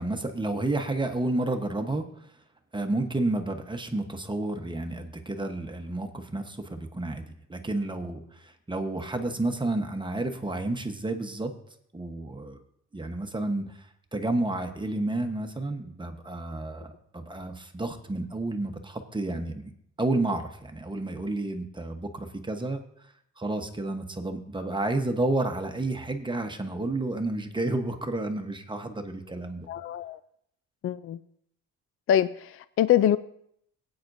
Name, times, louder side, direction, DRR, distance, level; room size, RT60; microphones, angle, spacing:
voice 1, 0.0-2.0 2.7-11.5 11.9-12.6 12.9-13.8 14.1-19.7 20.0-22.8 23.4-29.7, right 2 dB, 15° right, 6 dB, 1.1 m, -30 dB
voice 2, 29.7-30.2 30.8-31.2 32.1-33.2, left 10 dB, 50° left, 15 dB, 0.4 m, -24 dB
17.5 x 8.7 x 2.7 m, 0.70 s
cardioid pair, 90°, 30 cm